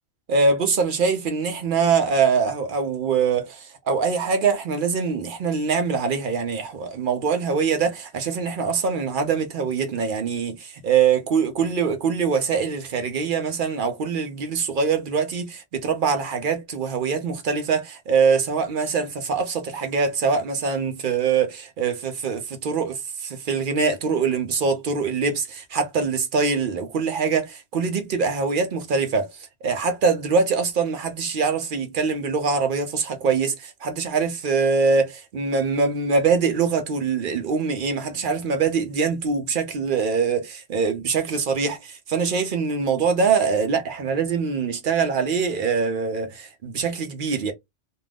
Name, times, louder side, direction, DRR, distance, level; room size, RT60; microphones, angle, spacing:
voice 1, 0.3-29.3 29.6-47.5, right 5 dB, 60° right, 0.5 m, -23 dB
2.5 x 2.3 x 3.3 m
omnidirectional pair, 1.3 m